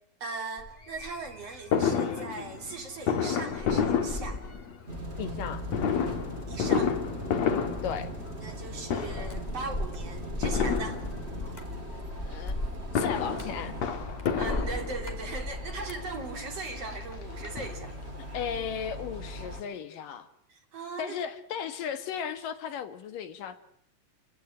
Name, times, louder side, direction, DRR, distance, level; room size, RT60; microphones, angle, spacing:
voice 1, 0.2-4.4 6.5-6.9 8.4-11.0 14.4-17.9 20.5-21.2, right 4 dB, 45° right, 4 dB, 4.0 m, -39 dB
sound 1, 0.6-17.3 17.6-18.1, left 1 dB, 15° left, 1.8 m, -39 dB
Fireworks, 1.7-4.9 5.7-8.6 8.9-9.5 10.4-11.5 12.7-15.3 16.1-16.2 16.5-16.6 16.9-18.2 18.5-18.6 18.7-18.8, left 7 dB, 55° left, 2.8 m, -30 dB
sound 2, 4.9-19.6, equal, 20° right, 2.9 m, -40 dB
voice 2, 5.2-5.6 7.8-8.1 12.2-12.5 12.9-13.8 18.3-20.3 21.0-23.6, left 8 dB, 75° left, 10 dB, 3.2 m, -35 dB
29.0 x 17.0 x 10.0 m, 0.70 s
omnidirectional pair, 4.0 m